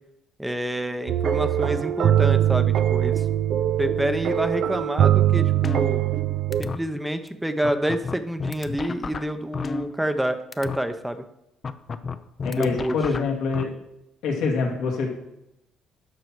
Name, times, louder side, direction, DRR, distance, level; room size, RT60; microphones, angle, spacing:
voice 1, 0.4-3.2 3.8-6.0 6.6-11.2 12.5-13.0, right 1 dB, 5° right, 8 dB, 0.8 m, -28 dB
sound 1, 1.1-6.6, right 11 dB, 70° right, 0.5 m, -22 dB
sound 2, 5.6-6.2 6.5-6.8 7.3-7.4 7.6-10.2 10.5-10.8 11.6-13.6, left 5 dB, 40° left, 0.6 m, -31 dB
voice 2, 12.4-13.7 14.2-15.1, left 4 dB, 85° left, 0 dB, 2.5 m, -25 dB
11.5 x 6.1 x 4.7 m, 0.87 s
cardioid pair, 90°, 0 cm